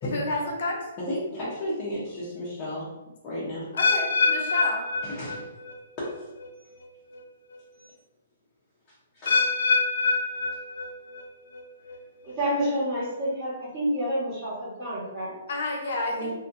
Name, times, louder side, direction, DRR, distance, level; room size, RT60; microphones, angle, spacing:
voice 1, 0.0-0.8 3.7-4.8 15.5-16.3, left 2 dB, 55° left, 0 dB, 0.8 m, -30 dB
voice 2, 1.0-2.9 3.2-3.6 5.0-5.5 6.0-6.3 6.6-6.7 7.7-7.9 9.1-9.5, left 1 dB, 20° left, -9 dB, 0.7 m, -33 dB
sound 1, 3.8-5.8 6.1-6.5 7.1-7.2 9.3-11.2 11.5-12.0 12.6-12.7, left 4 dB, 80° left, 0.4 m, -25 dB
voice 3, 12.2-15.3 16.1-16.3, equal, 25° right, -13 dB, 1.2 m, -29 dB
2.8 x 2.6 x 2.5 m, 1.0 s
hypercardioid pair, 170°, 0 cm